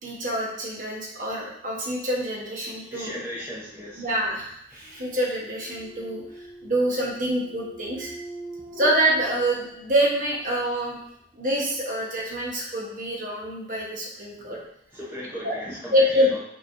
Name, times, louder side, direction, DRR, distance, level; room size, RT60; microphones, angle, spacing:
voice 1, 0.0-3.2 4.0-6.2 6.6-8.1 8.8-11.0 11.3-14.6 15.4-15.6 15.9-16.4, right 1 dB, 45° right, -3 dB, 1.1 m, -26 dB
voice 2, 2.9-4.1 14.4-14.6 14.9-16.4, equal, 15° right, -6 dB, 0.8 m, -36 dB
sound 1, 3.9-10.4, equal, 5° left, 0.5 m, -42 dB
5.6 x 3.4 x 2.6 m, 0.70 s
head